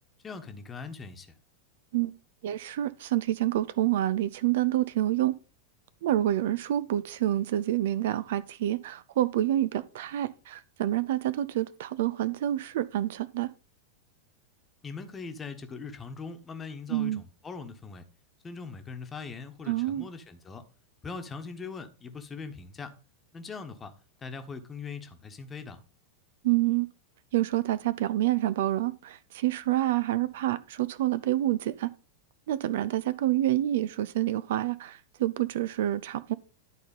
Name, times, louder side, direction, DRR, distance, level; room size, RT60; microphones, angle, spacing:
voice 1, 0.2-1.3 14.8-18.0 18.4-20.6 21.0-22.9 23.3-23.9 24.2-25.8, left 5 dB, 20° left, 1.2 m, -41 dB
voice 2, 2.4-5.3 6.0-13.5 16.9-17.2 19.7-20.1 26.4-26.9 27.3-31.9 32.5-36.3, right 13 dB, 55° right, 0.4 m, -27 dB
11.5 x 4.3 x 5.3 m
figure-of-eight pair, 90°, 0 cm